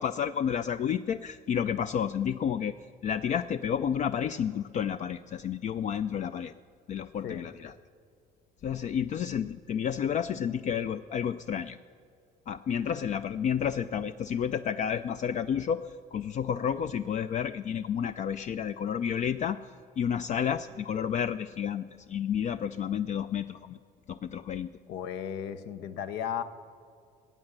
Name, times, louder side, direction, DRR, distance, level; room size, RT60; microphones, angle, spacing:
voice 1, 0.0-2.8 3.0-6.5 6.9-7.7 8.6-11.8 12.5-19.6 20.0-23.8 24.1-24.7, left 8 dB, 45° left, 12 dB, 0.4 m, -30 dB
voice 2, 24.9-26.4, left 9 dB, 85° left, 12 dB, 0.9 m, -35 dB
14.5 x 8.8 x 7.9 m, 2.2 s
cardioid pair, 110°, 17 cm